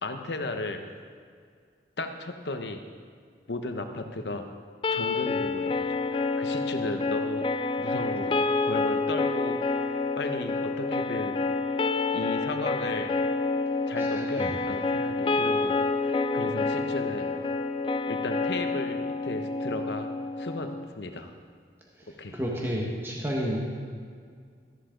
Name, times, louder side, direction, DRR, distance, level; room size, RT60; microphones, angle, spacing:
voice 1, 0.0-0.8 2.0-2.8 3.5-4.5 4.9-9.6 10.2-11.4 12.1-13.1 13.9-17.3 18.1-20.1 20.4-21.3 22.2-22.4, left 2 dB, 80° left, 6 dB, 1.0 m, -35 dB
sound 1, 4.8-20.9, left 3 dB, 30° left, 0.4 m, -28 dB
voice 2, 14.0-14.5 22.0-23.6, equal, 15° right, -3 dB, 1.4 m, -31 dB
13.5 x 11.5 x 3.9 m, 2.1 s
head